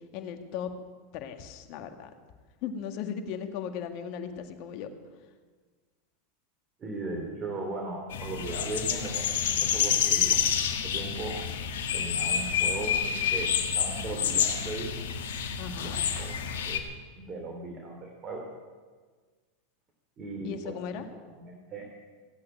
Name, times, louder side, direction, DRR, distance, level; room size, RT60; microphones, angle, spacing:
voice 1, 0.1-0.7 1.1-2.1 2.6-4.9 15.6-16.0 20.4-21.1, left 8 dB, 55° left, 6 dB, 1.9 m, -37 dB
voice 2, 6.8-10.4 10.8-11.4 11.9-13.5 13.7-15.1 15.8-16.8 17.2-18.5 20.2-21.9, right 2 dB, 30° right, 1 dB, 3.0 m, -38 dB
sound 1, 8.1-16.8, left 8 dB, 75° left, 1.8 m, -28 dB
16.5 x 8.5 x 9.3 m, 1.5 s
hypercardioid pair, 105°, 0 cm